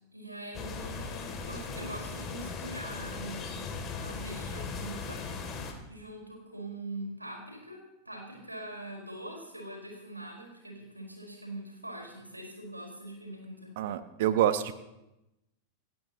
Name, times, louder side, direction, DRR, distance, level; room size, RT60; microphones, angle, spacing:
voice 1, 0.1-3.6 4.0-5.2 5.9-13.8, right 1 dB, 85° right, 0 dB, 4.9 m, -43 dB
sound 1, 0.5-5.7, left 4 dB, 25° left, 3.0 m, -38 dB
voice 2, 13.8-14.7, right 11 dB, 55° right, 11 dB, 1.1 m, -27 dB
28.5 x 13.0 x 3.1 m, 0.92 s
figure-of-eight pair, 90°, 0 cm